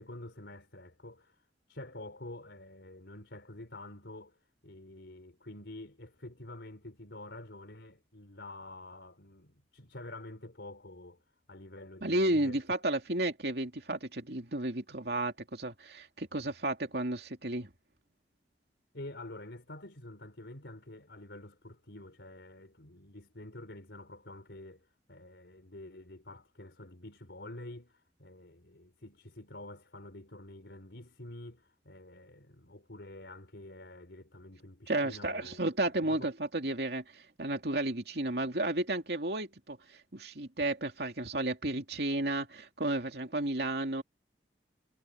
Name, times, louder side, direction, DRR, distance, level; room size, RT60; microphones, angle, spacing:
voice 1, 0.0-1.4 1.7-4.4 4.6-11.2 11.5-12.6 18.9-35.6 36.0-36.3, left 1 dB, 90° left, 3.8 m, -48 dB
voice 2, 12.0-17.7 34.9-44.0, right 1 dB, 70° right, 2.7 m, -32 dB
head